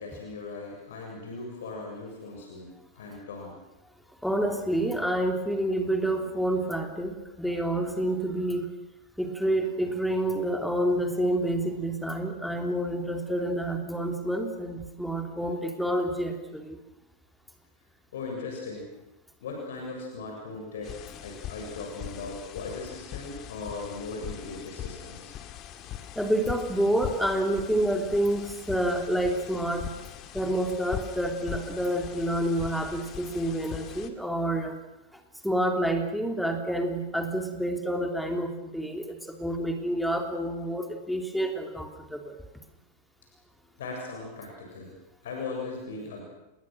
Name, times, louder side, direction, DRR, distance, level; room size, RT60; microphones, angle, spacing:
voice 1, 0.0-3.6 18.1-18.9 19.4-25.3 43.8-44.9 45.2-46.2, left 3 dB, 60° left, 0 dB, 7.2 m, -38 dB
voice 2, 4.2-8.7 9.2-16.8 26.1-29.9 30.3-34.8 35.4-42.4, right 1 dB, ahead, 4 dB, 3.4 m, -28 dB
sound 1, 20.8-34.1, left 11 dB, 35° left, 2.4 m, -41 dB
30.0 x 21.0 x 6.5 m, 0.99 s
figure-of-eight pair, 90°, 0 cm